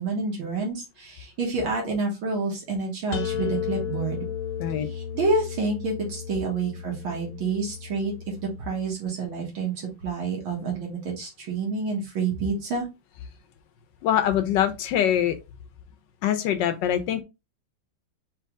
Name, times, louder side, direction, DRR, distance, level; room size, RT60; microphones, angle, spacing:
voice 1, 0.0-4.2 4.9-8.1 8.4-12.9, right 4 dB, 70° right, 2.1 m, -28 dB
sound 1, 3.1-8.9, left 8 dB, 90° left, 1.7 m, -34 dB
voice 2, 14.0-15.4 16.2-17.2, left 10 dB, 70° left, 1.1 m, -23 dB
4.5 x 3.0 x 3.6 m
omnidirectional pair, 2.3 m